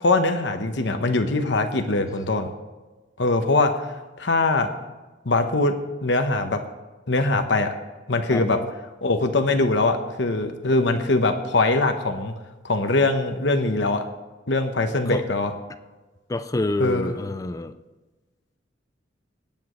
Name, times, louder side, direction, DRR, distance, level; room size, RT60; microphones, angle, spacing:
voice 1, 0.0-2.5 3.2-3.7 4.2-4.7 5.2-5.7 6.0-6.6 7.1-7.7 8.1-8.6 9.0-12.3 12.6-14.0 14.5-15.5 16.8-17.3, left 2 dB, 65° left, 6 dB, 1.0 m, -22 dB
voice 2, 16.3-17.8, left 2 dB, 20° left, 12 dB, 0.3 m, -27 dB
22.5 x 8.8 x 3.1 m, 1.2 s
head